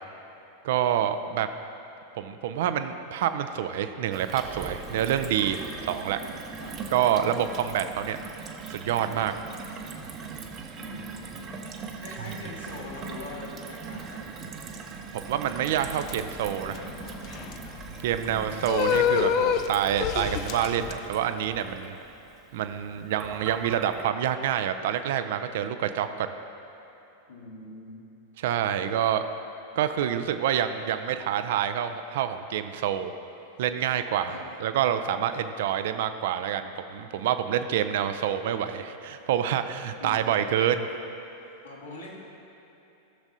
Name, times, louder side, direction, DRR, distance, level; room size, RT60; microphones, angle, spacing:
voice 1, 0.6-1.5 2.2-6.2 6.9-8.2 8.7-9.3 12.2-12.3 15.1-16.8 18.0-21.9 22.5-26.3 28.4-29.2 29.8-33.1 33.6-40.9, right 10 dB, 55° right, 9 dB, 0.4 m, -27 dB
Gurgling / Water tap faucet / Sink (filling or washing), 4.1-24.0, right 5 dB, 30° right, 0.8 m, -40 dB
voice 2, 10.8-11.6 12.0-14.3 18.1-18.7 27.3-27.9 34.3-34.4 40.0-40.1 41.6-42.1, left 2 dB, 75° left, -5 dB, 2.0 m, -42 dB
sound 1, 15.7-20.9, left 8 dB, 40° left, 0.4 m, -28 dB
16.0 x 7.1 x 2.7 m, 2.9 s
figure-of-eight pair, 90°, 0 cm